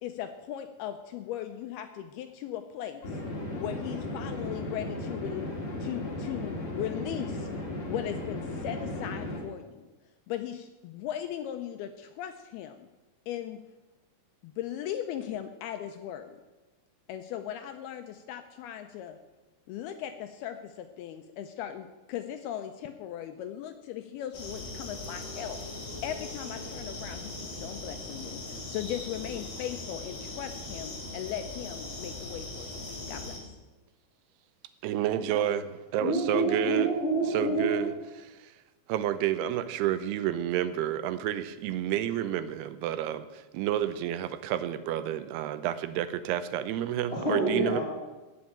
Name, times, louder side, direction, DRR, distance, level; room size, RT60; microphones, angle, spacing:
voice 1, 0.0-3.0 3.6-5.5 5.8-7.5 7.9-9.8 10.3-12.9 13.3-13.6 14.4-16.4 17.1-19.2 19.7-25.6 26.0-28.4 28.7-32.8 33.1-33.4, left 11 dB, 80° left, 7 dB, 2.4 m, -38 dB
sound 1, 3.0-9.4, left 2 dB, 40° left, 4.0 m, -36 dB
sound 2, 24.3-33.4, left 2 dB, 60° left, 4.8 m, -40 dB
voice 2, 34.8-35.6 35.9-36.9 37.3-37.9 38.2-38.5 38.9-47.8, right 11 dB, 80° right, 12 dB, 2.5 m, -30 dB
voice 3, 36.0-37.7 47.1-47.8, right 2 dB, 15° left, -6 dB, 4.1 m, -27 dB
16.0 x 6.3 x 8.7 m, 1.1 s
omnidirectional pair, 5.0 m